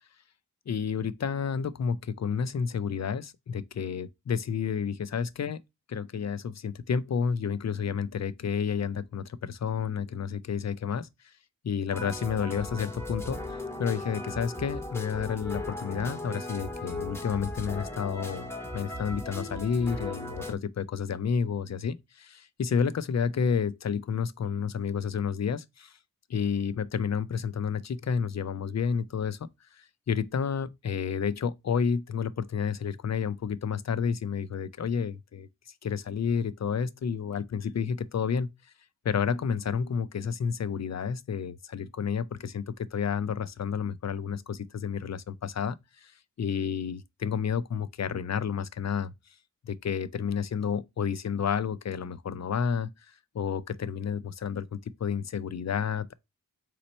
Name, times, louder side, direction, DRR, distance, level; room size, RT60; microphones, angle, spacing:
voice 1, 0.7-5.6 5.9-11.3 11.6-13.4 13.8-18.5 18.7-26.0 26.3-29.4 29.7-35.5 35.8-38.5 39.0-46.1 46.4-49.1 49.6-56.1, left 6 dB, 50° left, 0.5 m, -30 dB
sound 1, 11.9-20.5, left 2 dB, 5° left, 0.8 m, -37 dB
4.1 x 3.1 x 4.0 m
cardioid pair, 55°, 35 cm